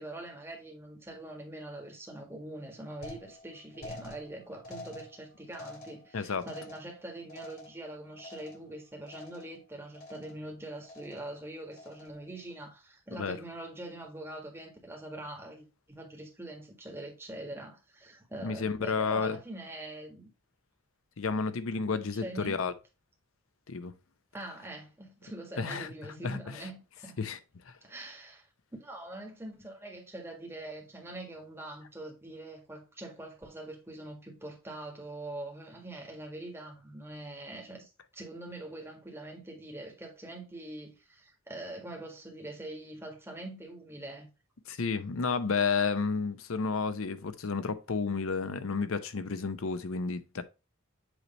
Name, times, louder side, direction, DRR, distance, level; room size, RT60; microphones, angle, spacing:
voice 1, 0.0-20.3 21.8-22.6 24.3-27.1 27.8-28.5 28.8-44.3, right 1 dB, 10° right, 1.7 m, -43 dB
sound 1, 3.0-8.8 9.1-9.6 9.9-10.5 10.8-11.4 11.7-12.3, left 2 dB, 45° left, 2.1 m, -48 dB
voice 2, 6.1-6.5 13.2-13.4 18.4-19.4 21.2-22.7 23.7-23.9 25.6-25.9 26.2-26.5 27.2-27.4 27.7-27.8 44.7-50.4, left 5 dB, 75° left, 0.7 m, -31 dB
7.9 x 3.2 x 4.2 m
head